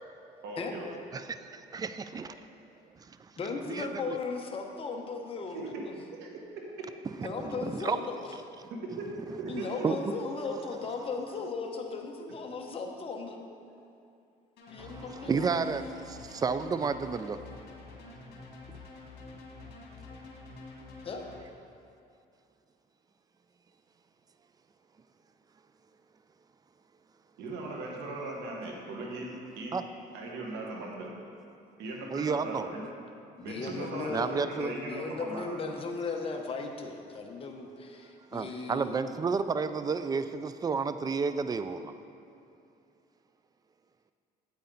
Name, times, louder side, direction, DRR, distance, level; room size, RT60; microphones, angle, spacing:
voice 1, 0.4-0.9 5.5-5.8 6.2-6.6 8.7-9.7 27.4-29.8 30.1-31.1 31.8-32.9 33.4-35.6, right 2 dB, 85° right, -1 dB, 1.6 m, -39 dB
voice 2, 1.1-2.3 3.7-4.2 7.2-8.0 9.4-9.5 9.8-10.0 14.8-17.4 29.7-29.8 32.1-32.7 34.1-34.7 38.3-41.9, right 5 dB, 20° right, 11 dB, 0.4 m, -31 dB
voice 3, 3.4-6.0 7.2-8.3 9.5-13.4 14.7-15.5 21.0-21.2 33.4-38.9, left 4 dB, 35° left, 2 dB, 0.9 m, -37 dB
sound 1, 14.6-21.4, left 3 dB, 70° left, 1.6 m, -47 dB
8.4 x 8.4 x 4.0 m, 2.5 s
cardioid pair, 110°, 17 cm